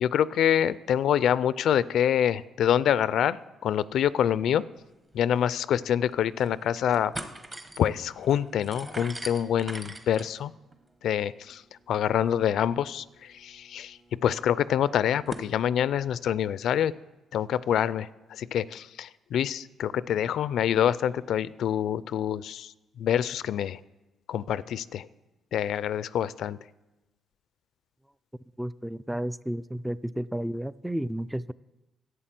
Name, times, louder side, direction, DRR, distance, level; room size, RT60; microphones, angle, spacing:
voice 1, 0.0-4.6 5.1-7.1 7.8-10.5 11.0-11.6 11.9-16.9 17.3-22.7 23.0-23.8 24.3-25.1 25.5-26.6, left 9 dB, 75° left, 18 dB, 0.4 m, -26 dB
sound 1, 5.1-5.2 5.5-5.6 6.1-6.6 6.9-15.5, right 2 dB, 25° right, 1.1 m, -44 dB
voice 2, 28.6-31.5, right 1 dB, 5° right, 15 dB, 0.3 m, -32 dB
11.5 x 8.4 x 7.5 m, 1.0 s
cardioid pair, 90°, 0 cm